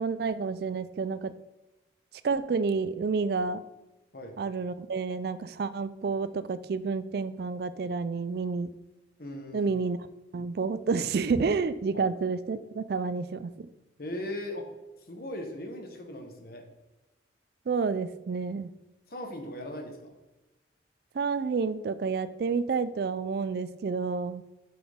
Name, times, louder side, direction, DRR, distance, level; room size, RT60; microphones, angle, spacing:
voice 1, 0.0-1.3 2.2-3.6 4.4-8.7 9.5-10.0 10.3-13.7 17.7-18.7 21.1-24.4, right 4 dB, 55° right, 15 dB, 0.3 m, -29 dB
voice 2, 9.2-9.7 11.9-12.0 14.0-14.6 15.1-16.6 19.1-20.1, left 1 dB, 50° left, 3 dB, 1.2 m, -38 dB
7.6 x 5.9 x 3.6 m, 1.0 s
head